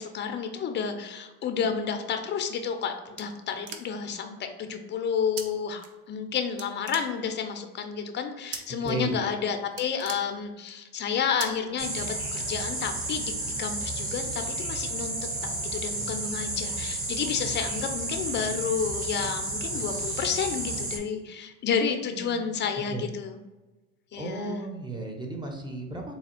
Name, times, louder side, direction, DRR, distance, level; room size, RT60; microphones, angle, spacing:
voice 1, 0.0-12.0 12.3-13.3 13.6-15.2 15.6-23.4 24.1-24.6, left 6 dB, 25° left, 6 dB, 0.5 m, -30 dB
sound 1, 2.5-4.2 5.4-5.5 5.8-6.3 6.6-7.5 8.5-8.9 9.3-9.4 9.7-10.8 11.4-11.5 11.9-12.6, right 6 dB, 70° right, 0.7 m, -40 dB
voice 2, 8.8-9.2 22.1-22.4 22.9-23.1 24.2-26.1, right 2 dB, 10° right, 2 dB, 0.8 m, -34 dB
sound 2, 11.8-21.0, right 2 dB, 30° right, 1.1 m, -32 dB
4.1 x 2.3 x 4.3 m, 1.1 s
supercardioid pair, 105°, 43 cm